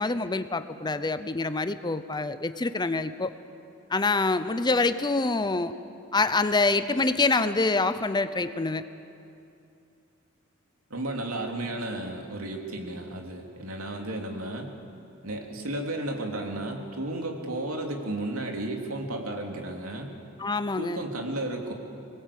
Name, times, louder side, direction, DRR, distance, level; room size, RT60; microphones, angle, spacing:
voice 1, 0.0-3.3 3.9-5.7 6.1-8.9 20.4-21.0, left 3 dB, 20° left, 12 dB, 0.7 m, -26 dB
voice 2, 10.9-14.7 15.2-20.1 20.7-21.7, right 1 dB, 85° right, 2 dB, 3.0 m, -33 dB
24.5 x 20.5 x 8.5 m, 2.6 s
head